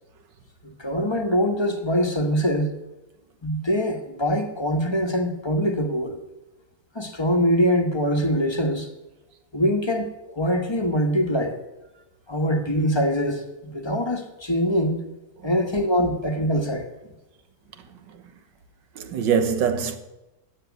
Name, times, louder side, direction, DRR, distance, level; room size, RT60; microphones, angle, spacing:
voice 1, 0.6-2.8 3.4-6.2 6.9-8.9 9.5-11.6 12.3-15.0 15.4-16.9, equal, 15° left, 1.2 m, -23 dB
voice 2, 15.5-16.1 19.0-20.0, right 7 dB, 85° right, 1.8 m, -25 dB
12.5 x 7.8 x 9.5 m
omnidirectional pair, 1.9 m